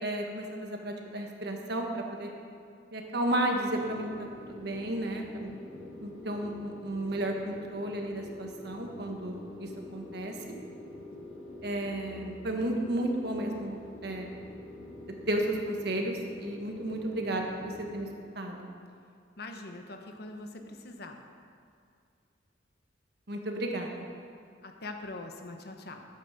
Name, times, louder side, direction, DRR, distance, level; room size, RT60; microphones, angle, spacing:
voice 1, 0.0-2.3 2.9-4.1 4.4-5.5 6.0-10.3 11.6-14.3 15.3-18.1 18.3-18.7 23.3-23.9, right 1 dB, 60° right, 2 dB, 1.5 m, -33 dB
sound 1, 3.6-18.1, left 1 dB, 40° left, 2.3 m, -46 dB
voice 2, 19.4-21.2 24.6-26.0, left 2 dB, 60° left, 4 dB, 1.1 m, -42 dB
11.5 x 8.4 x 6.7 m, 2.3 s
head